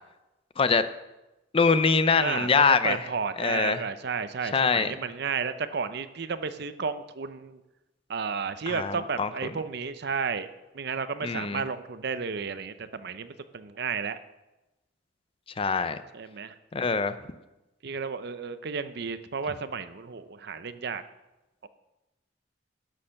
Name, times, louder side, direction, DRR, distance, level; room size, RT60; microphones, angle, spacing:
voice 1, 1.5-3.0 3.4-3.8 4.5-5.0 8.7-9.3 11.2-11.6 15.6-16.0 16.7-17.2, left 5 dB, 30° left, 12 dB, 0.5 m, -23 dB
voice 2, 2.2-2.5 2.8-7.6 8.1-10.5 10.7-14.2 16.1-16.5 17.8-21.0 21.6-21.7, right 5 dB, 60° right, 12 dB, 0.6 m, -32 dB
11.5 x 6.5 x 6.5 m, 1.0 s
head